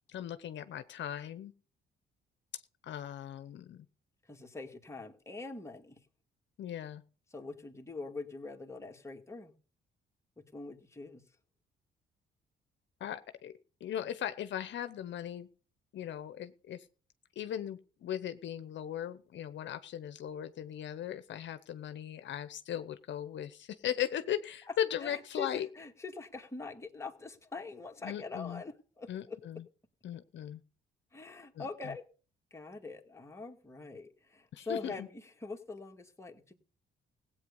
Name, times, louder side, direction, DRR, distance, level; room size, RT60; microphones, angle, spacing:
voice 1, 0.1-1.5 2.5-3.9 6.6-7.0 13.0-13.5 13.8-15.5 15.9-16.9 17.4-25.7 28.0-28.6 29.1-29.6 30.0-30.6 31.6-31.7 34.5-35.1, left 10 dB, 65° left, 11 dB, 0.9 m, -38 dB
voice 2, 4.2-6.0 7.3-9.5 10.4-11.2 24.7-24.8 25.0-29.4 31.1-32.0 32.5-36.5, left 3 dB, 15° left, 2 dB, 2.1 m, -43 dB
16.5 x 8.6 x 5.4 m, 0.40 s
cardioid pair, 90°, 20 cm